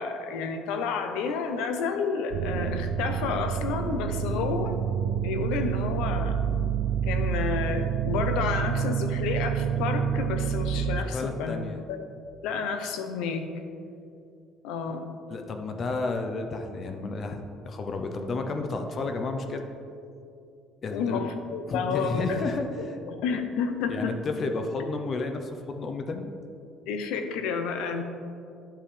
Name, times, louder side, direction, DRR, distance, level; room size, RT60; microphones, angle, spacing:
voice 1, 0.0-4.8 5.2-6.4 7.0-11.6 11.9-12.0 12.4-13.5 14.6-15.1 20.9-22.4 22.8-24.1 26.9-28.0, left 5 dB, 85° left, 7 dB, 0.7 m, -30 dB
sound 1, 2.3-11.0, right 8 dB, 75° right, 0.3 m, -28 dB
voice 2, 11.0-11.8 15.3-17.4 17.6-19.7 20.8-21.3 21.7-23.0 23.3-23.4 23.9-26.3, left 3 dB, 35° left, 5 dB, 0.6 m, -31 dB
11.0 x 5.7 x 3.3 m, 2.5 s
cardioid pair, 140°, 0 cm